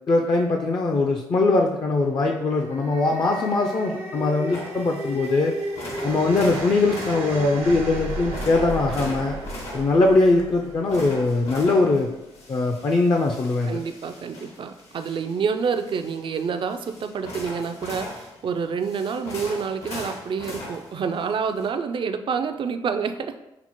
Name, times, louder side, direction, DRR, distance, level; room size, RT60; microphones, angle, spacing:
voice 1, 0.1-5.5 6.0-9.4 9.7-12.1 12.5-13.8, left 3 dB, 40° left, 2 dB, 0.4 m, -21 dB
sound 1, 2.4-11.7, right 1 dB, 90° right, 1.0 m, -34 dB
sound 2, 4.5-21.7, left 1 dB, 75° left, 1.1 m, -40 dB
voice 2, 13.7-23.4, right 6 dB, 50° right, 8 dB, 0.4 m, -28 dB
5.8 x 2.0 x 2.9 m, 0.95 s
supercardioid pair, 55°, 11 cm